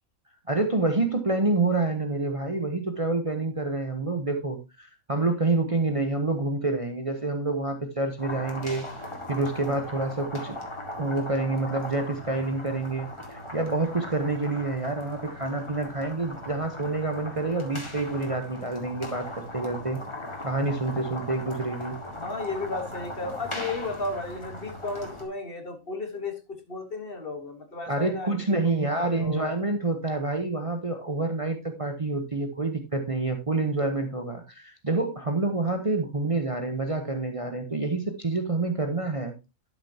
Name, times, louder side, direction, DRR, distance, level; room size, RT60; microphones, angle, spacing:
voice 1, 0.5-8.8 9.3-10.6 11.0-20.0 20.4-22.0 27.9-39.3, right 2 dB, 30° right, 5 dB, 0.9 m, -27 dB
sound 1, 8.2-25.2, left 1 dB, 20° left, 2.0 m, -39 dB
voice 2, 22.0-28.6 29.0-29.5, left 3 dB, 45° left, 7 dB, 1.5 m, -34 dB
11.5 x 6.9 x 2.8 m, 0.25 s
omnidirectional pair, 1.4 m